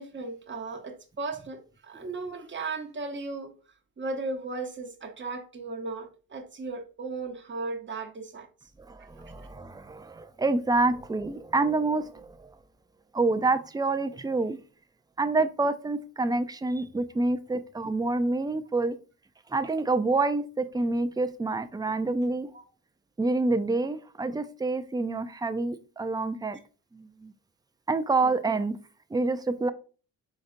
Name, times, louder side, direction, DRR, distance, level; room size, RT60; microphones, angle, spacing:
voice 1, 0.0-3.5 4.0-8.5 22.5-22.6, right 3 dB, 30° right, 1.0 m, -36 dB
voice 2, 8.9-12.5 13.1-14.6 15.2-19.0 19.5-22.5 23.2-26.6 26.9-27.3 27.9-28.8 29.1-29.7, right 3 dB, 10° right, 0.4 m, -27 dB
5.1 x 3.8 x 2.6 m
cardioid pair, 75°, 37 cm